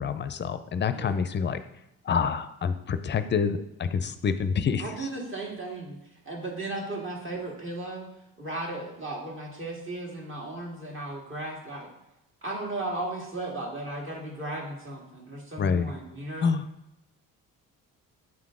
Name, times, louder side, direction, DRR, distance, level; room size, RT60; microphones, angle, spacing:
voice 1, 0.0-1.6 2.0-5.1 15.6-15.9 16.4-16.7, left 6 dB, 30° left, 12 dB, 0.5 m, -27 dB
voice 2, 4.8-6.0 6.3-8.1 8.4-11.9 12.4-16.5, right 2 dB, 35° right, -1 dB, 1.9 m, -35 dB
7.6 x 3.7 x 3.7 m, 0.88 s
supercardioid pair, 70°, 35 cm